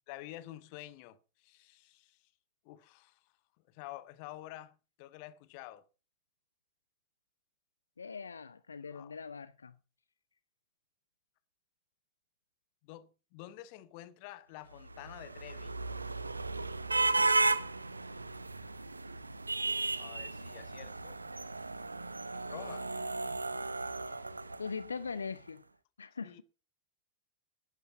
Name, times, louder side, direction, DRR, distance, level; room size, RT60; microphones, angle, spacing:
voice 1, 0.1-2.2 2.6-3.2 3.7-5.9 8.8-9.2 12.8-15.8 20.0-21.2 22.3-24.6 26.2-26.4, left 15 dB, 45° left, 0.9 m, -50 dB
voice 2, 8.0-9.7 24.6-25.6 26.0-26.4, left 5 dB, 75° left, 0.5 m, -41 dB
sound 1, 14.8-25.1, right 3 dB, 80° right, 0.7 m, -34 dB
12.0 x 9.3 x 5.3 m
figure-of-eight pair, 90°, 0 cm